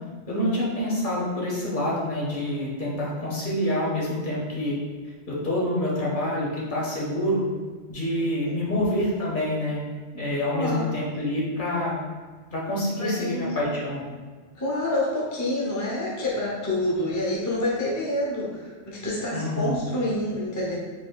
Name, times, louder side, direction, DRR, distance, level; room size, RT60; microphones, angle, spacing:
voice 1, 0.3-4.8 5.3-7.4 7.9-9.8 10.1-11.9 12.5-14.0 19.3-19.9, left 1 dB, 45° left, -5 dB, 1.1 m, -27 dB
voice 2, 10.5-10.9 13.0-13.5 14.5-20.8, left 1 dB, 20° left, -4 dB, 0.5 m, -27 dB
4.8 x 3.7 x 2.3 m, 1.5 s
omnidirectional pair, 1.2 m